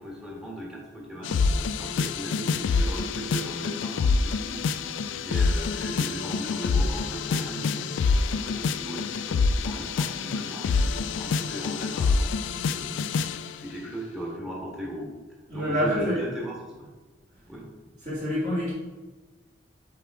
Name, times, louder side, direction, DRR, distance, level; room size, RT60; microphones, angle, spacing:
voice 1, 0.0-7.9 8.3-13.0 13.6-15.1 15.5-16.9 17.5-17.7, right 1 dB, 5° right, -4 dB, 1.4 m, -38 dB
sound 1, 1.2-13.5, left 4 dB, 80° left, 0.3 m, -26 dB
voice 2, 15.5-16.2 18.0-18.7, equal, 40° right, -8 dB, 2.2 m, -28 dB
7.2 x 4.6 x 3.6 m, 1.2 s
head